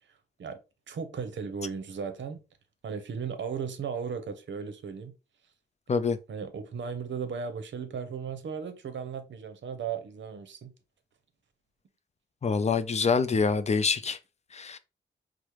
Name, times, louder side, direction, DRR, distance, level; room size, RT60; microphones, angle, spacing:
voice 1, 0.9-2.4 2.8-5.1 6.3-10.7, right 6 dB, 70° right, 0.7 m, -36 dB
voice 2, 12.4-14.2 14.5-14.8, left 5 dB, 35° left, 0.4 m, -25 dB
4.7 x 2.1 x 2.9 m
cardioid pair, 70°, 20 cm